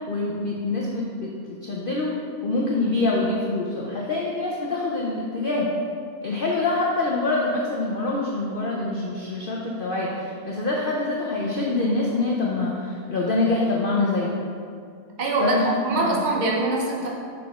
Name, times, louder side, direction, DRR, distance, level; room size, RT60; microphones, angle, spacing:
voice 1, 0.1-2.1 2.4-5.7 6.2-14.3 15.4-16.3, left 2 dB, 85° left, -3 dB, 0.4 m, -25 dB
voice 2, 15.2-17.1, right 2 dB, 75° right, -2 dB, 0.4 m, -23 dB
6.0 x 4.8 x 3.6 m, 2.3 s
omnidirectional pair, 1.7 m